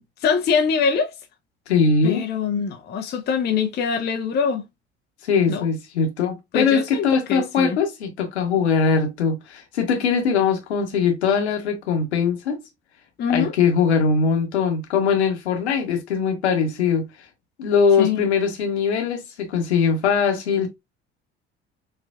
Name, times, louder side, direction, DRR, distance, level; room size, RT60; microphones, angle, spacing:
voice 1, 0.2-1.1 2.0-4.6 5.5-5.6 6.5-7.8 13.2-13.5 18.0-18.2, left 6 dB, 30° left, 0.5 m, -23 dB
voice 2, 1.7-2.2 5.2-12.6 13.3-17.1 17.6-20.7, left 5 dB, 75° left, 1.0 m, -21 dB
4.3 x 2.4 x 2.3 m
figure-of-eight pair, 55°, 34 cm